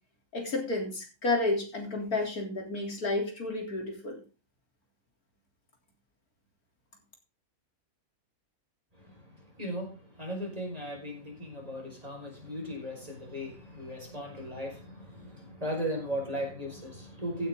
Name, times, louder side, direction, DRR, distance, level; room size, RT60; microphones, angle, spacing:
voice 1, 0.3-4.2, left 2 dB, 85° left, 2 dB, 3.9 m, -31 dB
voice 2, 9.6-9.9 10.2-17.5, equal, 25° right, 0 dB, 5.3 m, -37 dB
15.5 x 9.4 x 3.8 m, 0.31 s
omnidirectional pair, 1.5 m